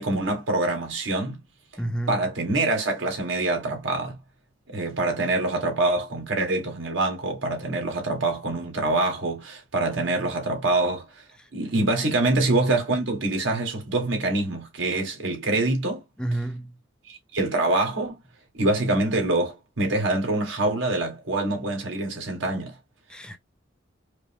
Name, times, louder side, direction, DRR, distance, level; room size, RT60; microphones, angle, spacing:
voice 1, 0.0-1.4 2.1-4.2 4.7-11.0 11.5-16.0 17.1-18.2 18.5-22.7, right 2 dB, 90° right, 1.5 m, -25 dB
voice 2, 1.8-2.3 11.4-11.5 16.2-16.8 23.1-23.4, right 1 dB, 5° left, 0.5 m, -30 dB
5.0 x 2.0 x 3.4 m
head